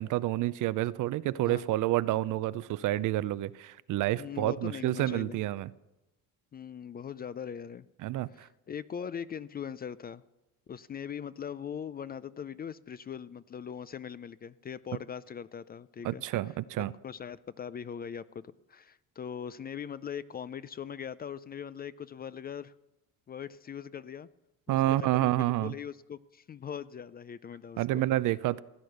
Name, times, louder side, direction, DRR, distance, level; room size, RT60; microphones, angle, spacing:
voice 1, 0.0-5.7 8.0-8.5 16.0-16.9 24.7-25.7 27.8-28.6, right 15 dB, 60° right, 0.6 m, -29 dB
voice 2, 4.2-5.4 6.5-7.9 8.3-10.2 10.7-22.7 23.3-24.3 24.7-28.0, left 8 dB, 25° left, 0.4 m, -41 dB
16.5 x 9.7 x 6.5 m
cardioid pair, 110°, 35 cm